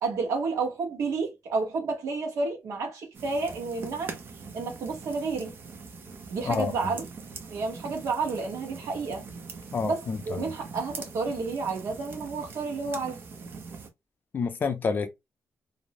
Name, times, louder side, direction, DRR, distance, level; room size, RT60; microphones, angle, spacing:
voice 1, 0.0-4.2 4.5-5.6 6.3-7.0 7.5-9.2 9.8-13.2, right 4 dB, 75° right, 1.0 m, -30 dB
sound 1, 3.1-13.9, right 4 dB, 40° right, 0.5 m, -43 dB
voice 2, 9.7-10.2 14.3-15.1, left 5 dB, 35° left, 0.4 m, -28 dB
2.5 x 2.0 x 2.8 m
wide cardioid pair, 180°, 5 cm